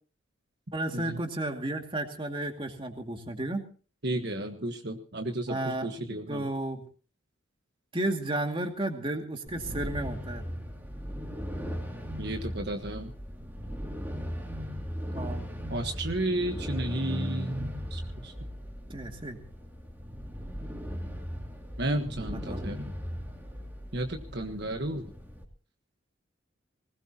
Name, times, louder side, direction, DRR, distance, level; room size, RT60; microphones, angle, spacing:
voice 1, 0.7-3.6 5.5-5.9 6.3-6.8 7.9-10.4 15.1-15.5 18.9-19.4 22.3-22.7, right 1 dB, 25° right, 4 dB, 2.4 m, -33 dB
voice 2, 4.0-6.5 12.2-13.1 15.7-18.3 21.8-22.8 23.9-25.0, right 1 dB, 55° right, 4 dB, 1.4 m, -33 dB
sound 1, 9.5-25.4, equal, 10° right, 2.7 m, -38 dB
21.0 x 19.5 x 3.0 m, 0.39 s
head